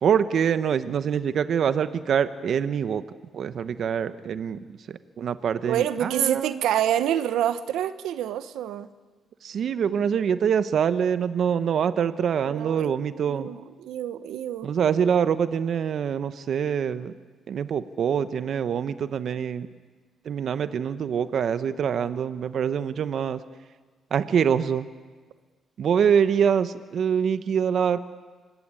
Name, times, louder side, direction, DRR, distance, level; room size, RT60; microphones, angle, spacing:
voice 1, 0.0-3.0 3.3-4.6 4.9-6.6 9.4-13.5 14.6-17.1 17.5-19.7 20.2-23.4 24.1-24.9 25.8-28.0, right 7 dB, 60° right, 12 dB, 1.0 m, -25 dB
voice 2, 5.7-8.9 12.5-12.9 13.2-14.7, right 11 dB, 85° right, 12 dB, 1.1 m, -27 dB
25.5 x 21.5 x 9.9 m, 1.4 s
cardioid pair, 90°, 0 cm